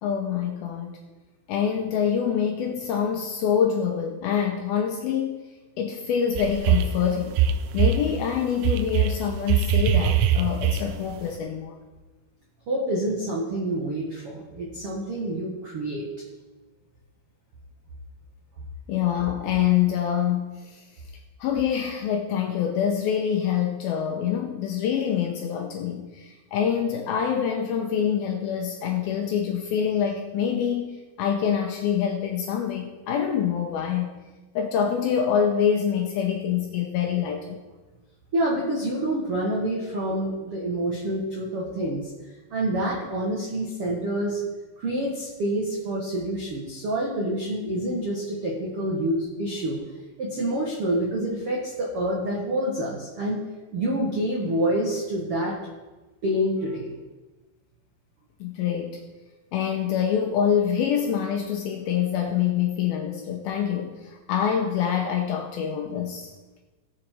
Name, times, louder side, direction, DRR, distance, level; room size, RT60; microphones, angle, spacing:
voice 1, 0.0-1.0 1.5-5.4 5.8-7.4 7.7-11.8 18.9-20.8 21.4-34.1 34.6-37.6 58.4-59.0 59.5-66.3, left 8 dB, 80° left, 3 dB, 2.3 m, -25 dB
sound 1, 6.4-7.0 7.3-8.1 8.6-11.1, right 8 dB, 90° right, 2.3 m, -21 dB
voice 2, 12.7-16.1 38.3-42.1 42.5-44.4 44.8-49.8 50.2-53.4 53.7-55.6 56.2-56.9, right 1 dB, 70° right, -3 dB, 1.3 m, -27 dB
17.5 x 7.3 x 4.6 m, 1.2 s
omnidirectional pair, 5.1 m